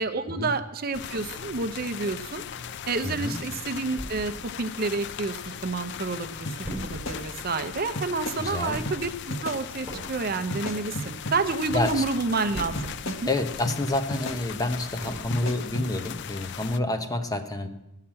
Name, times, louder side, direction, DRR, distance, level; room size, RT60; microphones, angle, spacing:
voice 1, 0.0-2.4 2.9-6.5 6.8-13.3, right 3 dB, 45° right, 10 dB, 0.6 m, -29 dB
sound 1, 0.9-16.8, left 8 dB, 55° left, 0.4 m, -39 dB
voice 2, 3.0-3.4 8.4-8.9 11.7-12.0 13.3-17.7, left 2 dB, 20° left, 6 dB, 0.9 m, -28 dB
sound 2, 4.0-5.5 5.9-6.0 6.2-13.2 13.6-15.7 16.2-16.3 16.7-16.8, right 1 dB, 10° right, 4.8 m, -41 dB
sound 3, 6.5-6.6 6.9-7.7 8.0-8.4 8.9-9.0 9.3-9.6 10.5-11.4 11.7-12.4 12.8-13.2 13.7-13.8 14.1-14.4 15.3-15.9, equal, 80° left, 1.2 m, -34 dB
14.5 x 5.8 x 8.7 m, 0.92 s
head